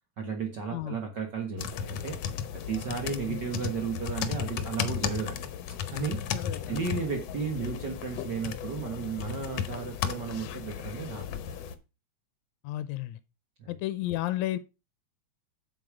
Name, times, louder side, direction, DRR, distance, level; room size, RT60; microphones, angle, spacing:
voice 1, 0.2-2.2 2.5-5.5 5.9-6.2 6.7-11.7 13.6-13.7, right 5 dB, 50° right, 1.5 m, -34 dB
sound 1, 1.6-11.8, left 8 dB, 70° left, 1.9 m, -35 dB
voice 2, 6.3-6.8 12.6-13.2 13.7-14.6, left 14 dB, 85° left, 2.0 m, -32 dB
8.0 x 7.0 x 4.9 m
omnidirectional pair, 3.3 m